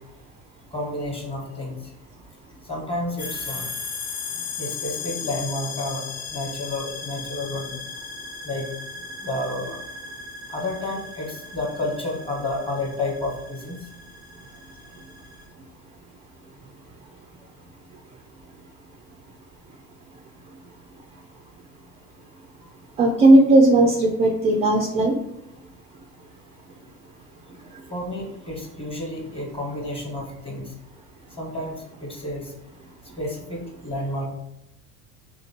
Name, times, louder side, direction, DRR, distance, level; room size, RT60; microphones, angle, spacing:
voice 1, 0.7-1.8 2.6-3.7 4.6-7.8 8.4-8.7 9.2-9.8 10.5-13.8 27.9-30.7 31.3-32.5 33.2-34.3, left 1 dB, 15° left, -1 dB, 1.2 m, -30 dB
sound 1, 3.2-15.5, left 5 dB, 40° left, 1.1 m, -36 dB
voice 2, 23.0-25.2, right 2 dB, 15° right, 1 dB, 0.3 m, -16 dB
3.2 x 2.7 x 4.3 m, 0.81 s
supercardioid pair, 100°, 44 cm